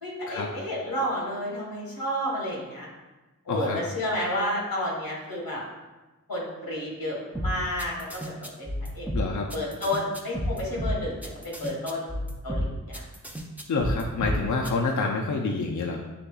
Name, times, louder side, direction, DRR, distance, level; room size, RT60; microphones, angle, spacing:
voice 1, 0.0-2.9 3.4-5.6 6.3-9.1 9.5-11.2 11.4-12.1 12.4-13.0, left 1 dB, 90° left, -4 dB, 1.4 m, -31 dB
voice 2, 3.5-3.8 9.1-9.5 13.7-16.0, left 3 dB, 55° left, 0 dB, 0.5 m, -27 dB
sound 1, 7.3-14.7, equal, 5° right, 0.5 m, -31 dB
6.7 x 2.8 x 2.3 m, 1.1 s
wide cardioid pair, 60°, 35 cm